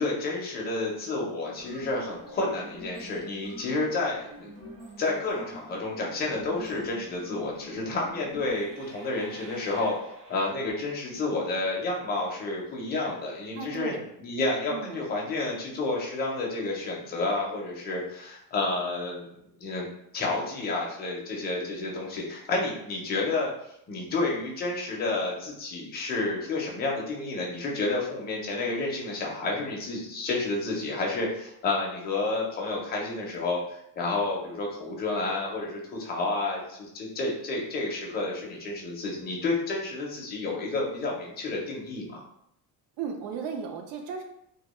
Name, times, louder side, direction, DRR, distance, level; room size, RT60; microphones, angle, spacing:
voice 1, 0.0-4.5 5.0-10.0 10.3-13.9 14.2-19.3 19.6-19.9 20.1-23.5 23.9-42.2, left 2 dB, 25° left, -2 dB, 0.4 m, -30 dB
sound 1, 1.5-10.7, equal, 50° right, 0.9 m, -46 dB
voice 2, 13.5-14.0 14.7-15.1 43.0-44.2, right 6 dB, 75° right, 4 dB, 0.6 m, -35 dB
2.2 x 2.2 x 2.9 m, 0.76 s
cardioid pair, 175°, 41 cm